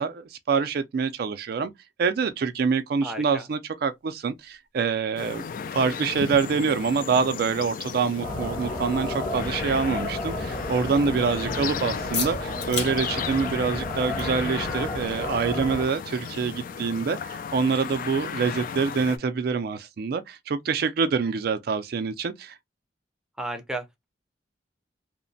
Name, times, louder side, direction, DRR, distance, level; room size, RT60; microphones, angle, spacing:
voice 1, 0.0-1.7 2.0-5.4 5.7-22.6, right 5 dB, 60° right, 0.4 m, -26 dB
voice 2, 3.0-3.4 11.5-11.7 23.4-24.1, right 1 dB, 5° right, 0.5 m, -34 dB
sound 1, 3.8-19.1, left 6 dB, 90° left, 1.1 m, -43 dB
sound 2, 5.2-19.2, left 6 dB, 50° left, 0.3 m, -35 dB
sound 3, 8.2-15.8, left 1 dB, 25° left, 0.8 m, -33 dB
2.9 x 2.1 x 2.6 m
head